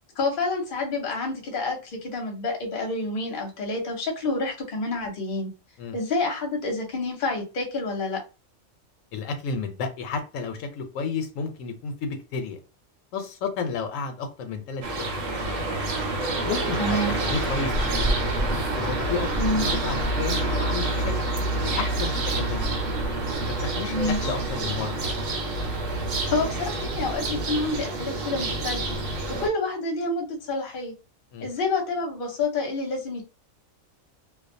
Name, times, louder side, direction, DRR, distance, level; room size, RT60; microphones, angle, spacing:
voice 1, 0.2-5.5 5.9-8.2 16.8-17.2 19.4-19.7 23.9-24.3 26.3-28.9 29.4-30.9 31.4-33.3, left 2 dB, 50° left, 2 dB, 0.8 m, -28 dB
voice 2, 9.1-12.6 13.1-15.7 16.5-18.2 18.8-19.3 19.6-21.1 21.6-22.8 23.6-23.9 24.2-25.1 31.3-31.5, left 5 dB, 80° left, 6 dB, 0.9 m, -32 dB
sound 1, 14.8-29.5, right 2 dB, 80° right, 1.0 m, -27 dB
2.3 x 2.2 x 2.5 m, 0.31 s
omnidirectional pair, 1.3 m